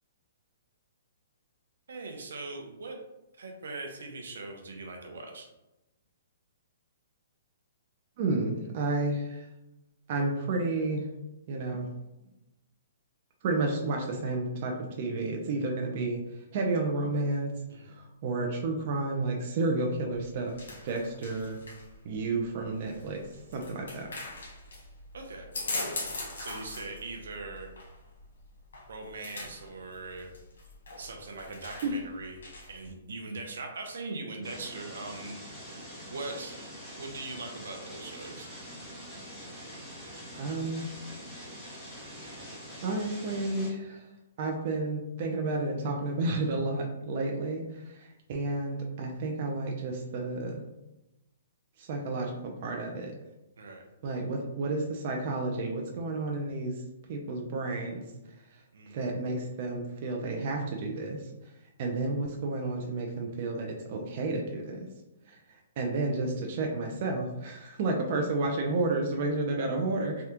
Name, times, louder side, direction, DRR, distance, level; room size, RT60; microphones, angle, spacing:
voice 1, 1.9-3.0 3.4-5.5 17.7-18.0 25.1-25.5 26.4-27.7 28.9-30.3 31.0-32.4 32.7-35.4 36.1-36.6 37.0-38.5 53.6-53.8 58.7-59.1, right 3 dB, 80° right, 2 dB, 0.7 m, -40 dB
voice 2, 8.2-9.4 10.1-11.0 11.5-11.9 13.4-16.2 16.5-17.5 17.9-18.0 18.2-20.5 20.8-21.6 22.0-23.2 23.5-24.1 31.8-31.9 40.4-40.9 42.8-44.0 44.4-50.7 51.8-53.1 54.0-56.7 57.1-58.0 58.9-61.2 61.8-64.9 65.3-65.4 65.8-70.2, right 2 dB, 40° right, 1 dB, 0.5 m, -31 dB
sound 1, 19.9-32.9, left 2 dB, 90° left, 1.2 m, -42 dB
sound 2, 34.4-43.7, equal, ahead, 0.9 m, -44 dB
3.4 x 2.3 x 2.8 m, 0.94 s
hypercardioid pair, 160°, 0 cm